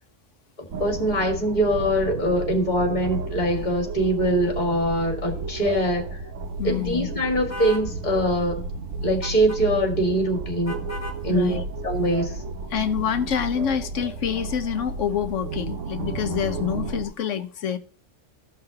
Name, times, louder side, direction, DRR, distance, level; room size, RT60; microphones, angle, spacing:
voice 1, 0.6-6.1 6.6-8.6 9.0-10.8 11.2-11.6 11.8-12.4, right 1 dB, 35° left, 2.1 m, -23 dB
sound 1, 0.7-17.1, right 3 dB, 90° right, 1.2 m, -33 dB
voice 2, 6.6-7.1 11.3-11.6 12.7-17.8, left 8 dB, 80° left, 1.2 m, -27 dB
sound 2, 7.5-7.9 9.2-9.6 10.7-11.2, equal, 15° left, 1.5 m, -35 dB
15.5 x 5.7 x 2.9 m
omnidirectional pair, 1.3 m